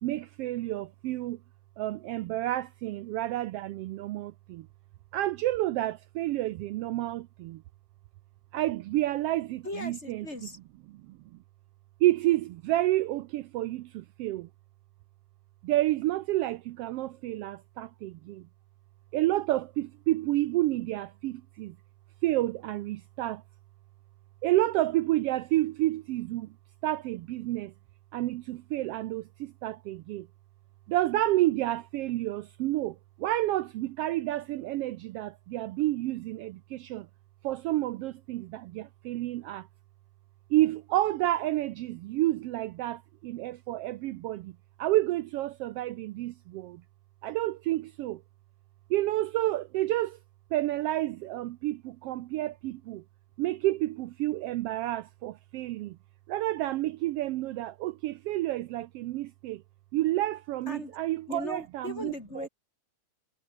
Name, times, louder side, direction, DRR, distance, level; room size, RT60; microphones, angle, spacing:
voice 1, 0.0-1.4 1.8-4.7 5.1-7.6 8.5-10.2 11.1-11.2 12.0-14.5 15.6-18.5 19.1-21.8 22.2-23.4 24.4-26.5 26.8-27.7 28.1-30.3 30.9-37.1 37.4-39.7 40.5-46.8 47.2-48.2 48.9-50.2 50.5-53.0 53.4-56.0 56.3-59.6 59.9-62.1, right 16 dB, 85° right, 1.3 m, -30 dB
voice 2, 9.6-10.6 60.7-61.0 61.3-62.5, left 2 dB, 20° left, 5.0 m, -38 dB
omnidirectional pair, 3.4 m